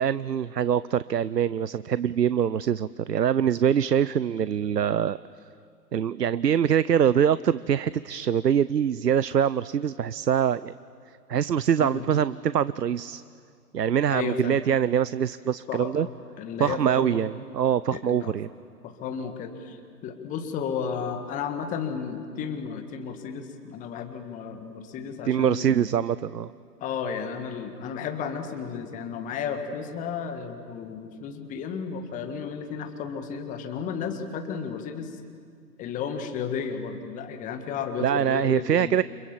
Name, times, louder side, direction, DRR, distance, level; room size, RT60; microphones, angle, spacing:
voice 1, 0.0-5.2 5.9-10.7 11.3-13.2 13.7-16.1 16.6-18.5 25.2-26.5 38.0-39.0, right 8 dB, 75° right, 17 dB, 0.7 m, -24 dB
voice 2, 14.1-14.6 15.7-17.2 17.9-18.3 18.8-25.9 26.8-35.1 35.8-39.0, left 6 dB, 15° left, 6 dB, 1.8 m, -33 dB
29.5 x 26.5 x 7.4 m, 2.2 s
figure-of-eight pair, 125°, 49 cm